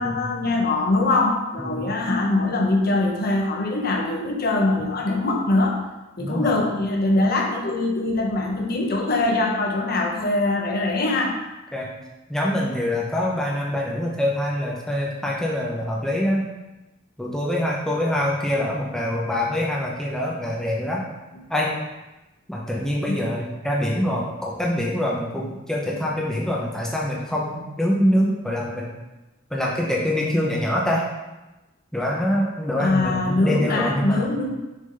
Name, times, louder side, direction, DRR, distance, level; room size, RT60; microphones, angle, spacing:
voice 1, 0.0-5.8 6.2-11.3 23.1-23.2 32.8-34.6, left 2 dB, 45° left, 1 dB, 0.8 m, -22 dB
voice 2, 1.6-1.9 6.2-6.5 11.7-11.9 12.3-16.5 17.2-21.0 21.5-21.8 22.5-28.9 29.5-31.1 31.9-34.3, left 1 dB, ahead, -4 dB, 0.6 m, -24 dB
6.3 x 4.0 x 3.8 m, 1.0 s
head